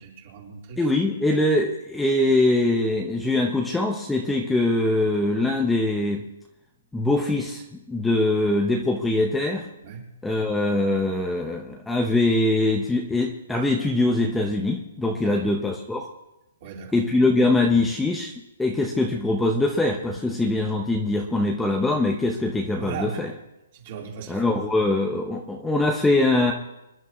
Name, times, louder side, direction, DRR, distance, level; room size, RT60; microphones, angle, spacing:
voice 1, 0.0-0.8 9.8-10.0 15.2-15.5 16.6-17.0 22.8-23.2 23.7-24.4, right 6 dB, 35° right, -2 dB, 3.7 m, -37 dB
voice 2, 0.8-6.2 6.9-9.6 10.2-16.1 16.9-18.3 18.6-23.3 24.3-26.5, left 2 dB, 5° left, 1 dB, 0.7 m, -23 dB
26.5 x 11.0 x 3.1 m, 0.93 s
hypercardioid pair, 170°, 0 cm